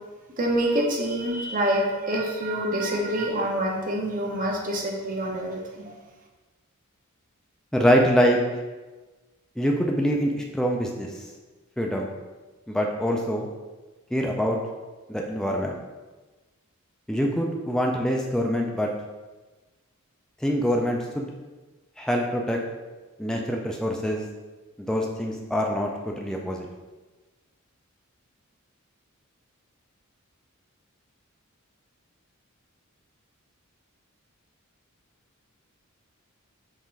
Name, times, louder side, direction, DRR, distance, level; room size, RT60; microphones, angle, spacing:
voice 1, 0.4-5.9, right 1 dB, 40° right, 0 dB, 0.7 m, -26 dB
voice 2, 7.7-8.4 9.6-11.2 11.8-12.1 12.7-13.5 14.1-14.6 15.1-15.8 17.1-18.9 20.4-21.3 22.0-22.6 23.2-24.2 24.9-26.7, equal, 5° left, 0 dB, 0.3 m, -24 dB
5.5 x 2.5 x 3.1 m, 1.2 s
head